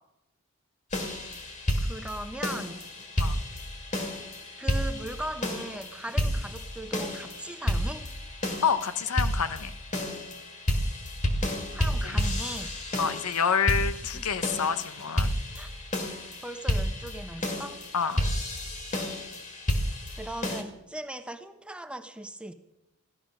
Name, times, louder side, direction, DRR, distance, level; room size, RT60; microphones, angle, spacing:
sound 1, 0.9-20.6, left 1 dB, 35° left, 1.7 m, -31 dB
voice 1, 1.8-2.8 4.6-8.1 11.7-12.7 14.1-14.2 15.5-15.7 16.4-17.8 20.2-22.5, right 1 dB, 5° right, 8 dB, 0.7 m, -38 dB
voice 2, 8.6-9.7 12.0-12.2 13.0-15.3 17.9-18.2, left 6 dB, 90° left, 12 dB, 0.8 m, -28 dB
15.5 x 11.5 x 6.2 m, 0.96 s
head